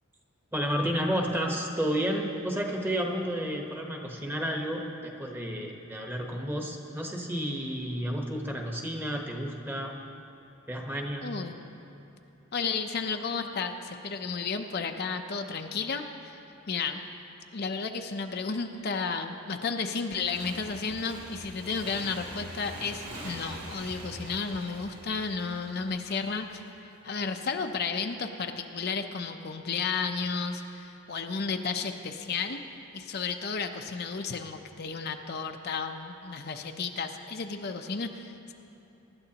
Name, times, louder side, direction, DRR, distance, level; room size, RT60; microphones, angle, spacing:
voice 1, 0.5-9.9 10.7-11.3, equal, 10° right, 1 dB, 1.1 m, -31 dB
voice 2, 11.2-11.6 12.5-16.4 16.7-17.0 17.5-32.6 32.9-38.5, left 5 dB, 50° left, 5 dB, 0.6 m, -33 dB
Motorcycle / Engine, 20.2-26.6, right 1 dB, 80° right, 2.5 m, -44 dB
24.0 x 12.0 x 2.9 m, 2.9 s
head